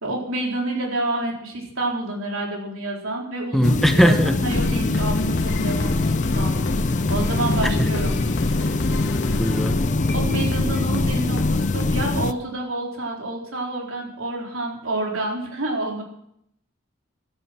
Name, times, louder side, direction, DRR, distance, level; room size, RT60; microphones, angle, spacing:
voice 1, 0.0-6.6 7.1-8.2 10.1-16.0, right 2 dB, 75° right, 0 dB, 4.3 m, -28 dB
voice 2, 3.5-4.4 9.4-9.9, equal, ahead, 7 dB, 0.9 m, -19 dB
sound 1, 3.6-12.3, left 3 dB, 40° left, 0.6 m, -23 dB
sound 2, 4.5-12.2, left 1 dB, 60° left, 1.6 m, -28 dB
15.5 x 12.5 x 6.1 m, 0.72 s
head